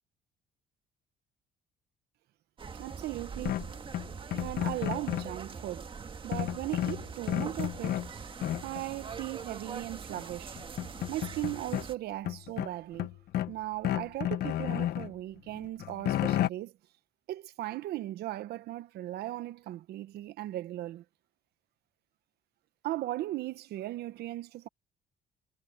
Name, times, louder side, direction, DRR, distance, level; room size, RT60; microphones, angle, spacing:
sound 1, 2.6-11.9, right 5 dB, 30° right, 1.7 m, -43 dB
voice 1, 2.8-3.7 4.4-5.9 6.2-8.1 8.6-10.6 11.1-13.1 13.5-16.8 17.3-21.0 22.8-24.7, right 15 dB, 75° right, 1.0 m, -37 dB
sound 2, 3.5-5.4 6.3-8.1 8.4-8.8 10.1-10.2 10.6-11.9 12.2-13.6 13.8-15.1 15.5-16.5, left 12 dB, 65° left, 0.9 m, -32 dB
cardioid pair, 110°, 17 cm